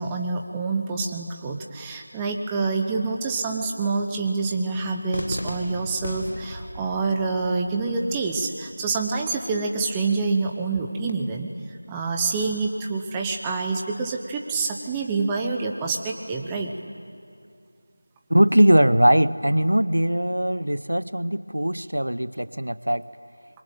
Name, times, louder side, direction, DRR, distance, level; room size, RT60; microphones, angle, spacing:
voice 1, 0.0-11.5 11.9-16.7, right 4 dB, 10° right, 2 dB, 1.0 m, -27 dB
Cheering / Fireworks, 5.1-11.1, left 1 dB, 70° left, 2.4 m, -39 dB
voice 2, 18.3-23.0, right 1 dB, 75° right, 16 dB, 0.8 m, -20 dB
25.5 x 22.5 x 9.2 m, 2.3 s
figure-of-eight pair, 170°, 0 cm